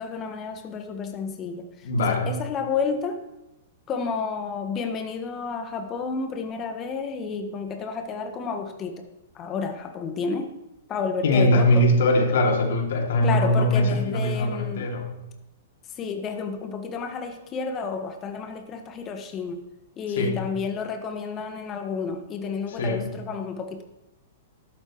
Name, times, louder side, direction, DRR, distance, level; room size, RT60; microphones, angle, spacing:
voice 1, 0.0-3.2 3.9-9.1 9.3-10.5 10.9-11.9 13.2-14.9 15.9-19.7 20.0-23.8, left 5 dB, 30° left, 5 dB, 1.5 m, -31 dB
voice 2, 1.8-2.4 11.2-15.1 20.2-20.4 22.8-23.1, left 1 dB, 65° left, 1 dB, 2.6 m, -21 dB
13.5 x 11.5 x 3.2 m, 0.93 s
hypercardioid pair, 110°, 0 cm